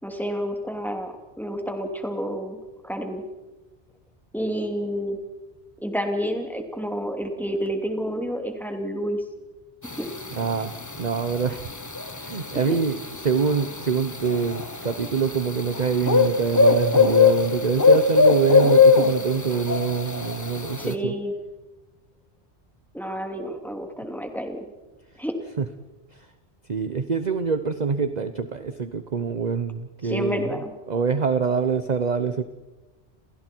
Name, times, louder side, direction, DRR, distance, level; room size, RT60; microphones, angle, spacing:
voice 1, 0.0-2.6 2.8-3.2 4.3-5.2 5.8-9.2 9.8-10.1 12.5-12.8 20.8-21.3 22.9-24.7 25.2-25.4 30.0-30.7, equal, ahead, 3 dB, 2.9 m, -29 dB
sound 1, 9.9-20.9, left 4 dB, 20° left, 0.8 m, -21 dB
voice 2, 10.3-10.7 11.0-11.7 12.2-13.0 13.2-21.1 25.6-25.7 26.1-26.3 26.7-30.5 30.9-32.4, right 5 dB, 40° right, 9 dB, 1.0 m, -25 dB
29.0 x 28.5 x 4.6 m, 1.1 s
omnidirectional pair, 1.2 m